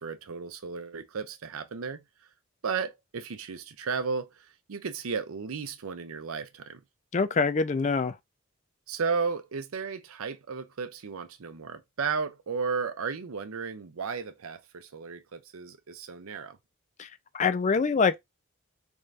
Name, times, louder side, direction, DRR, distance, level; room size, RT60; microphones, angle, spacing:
voice 1, 0.0-2.0 2.6-6.8 8.9-16.6, right 5 dB, 80° right, 0.6 m, -34 dB
voice 2, 7.1-8.1 17.0-17.1 17.3-18.2, left 5 dB, 35° left, 0.3 m, -24 dB
3.5 x 2.6 x 3.3 m
head